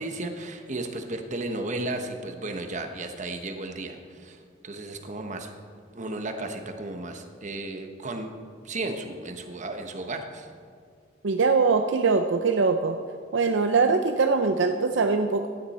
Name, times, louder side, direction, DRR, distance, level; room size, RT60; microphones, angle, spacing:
voice 1, 0.0-5.5 5.9-8.3 8.6-10.5, right 2 dB, 40° right, 5 dB, 1.1 m, -34 dB
voice 2, 11.2-13.0 13.3-15.5, right 4 dB, 65° right, 6 dB, 0.5 m, -22 dB
16.0 x 10.5 x 4.3 m, 2.1 s
head